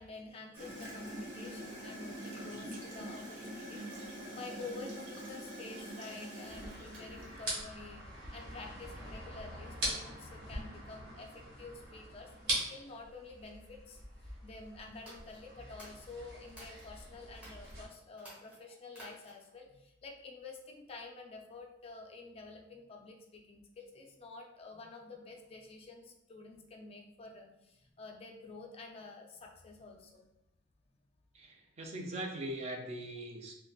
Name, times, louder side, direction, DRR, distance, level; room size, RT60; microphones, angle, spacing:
voice 1, 0.0-3.8 4.3-30.3, left 3 dB, 30° left, 2 dB, 0.3 m, -49 dB
Gurgling / Toilet flush, 0.5-7.6, equal, 80° right, 1.2 m, -44 dB
sound 1, 6.5-17.9, right 1 dB, 60° right, 1.4 m, -42 dB
sound 2, 14.9-16.9 17.3-17.7 18.1-19.5, equal, 10° right, 1.2 m, -54 dB
voice 2, 31.3-33.5, right 1 dB, 35° right, 2 dB, 0.4 m, -41 dB
3.9 x 2.1 x 2.3 m, 0.88 s
head